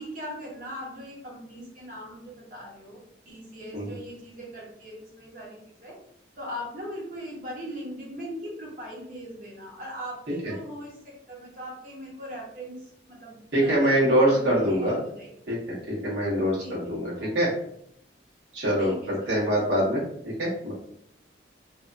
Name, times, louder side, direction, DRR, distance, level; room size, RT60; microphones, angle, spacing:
voice 1, 0.0-6.0 6.4-15.3 16.6-17.4 18.8-19.4, equal, 45° right, -3 dB, 0.8 m, -40 dB
voice 2, 13.5-15.0 15.5-15.6 15.9-17.5 18.5-20.0 20.4-20.7, equal, 75° right, -6 dB, 1.2 m, -24 dB
2.6 x 2.2 x 2.5 m, 0.72 s
head